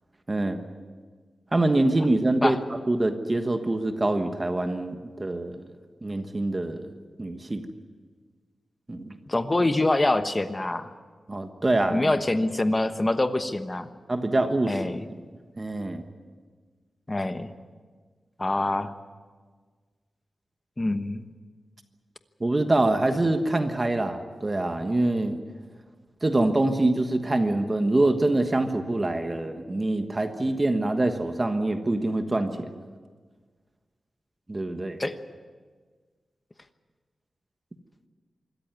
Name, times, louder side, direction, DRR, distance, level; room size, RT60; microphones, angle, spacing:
voice 1, 0.3-0.6 1.5-2.6 2.9-5.6 6.0-6.9 7.2-7.6 8.9-9.1 11.3-12.1 14.1-14.8 15.6-16.0 22.4-25.4 26.2-32.5 34.5-35.0, right 2 dB, 25° right, 7 dB, 1.3 m, -25 dB
voice 2, 9.3-10.9 11.9-13.9 14.7-15.1 17.1-17.5 18.4-18.9 20.8-21.2 35.0-35.2, left 2 dB, 20° left, 10 dB, 1.1 m, -25 dB
25.5 x 14.0 x 9.6 m, 1.5 s
wide cardioid pair, 135°, 0 cm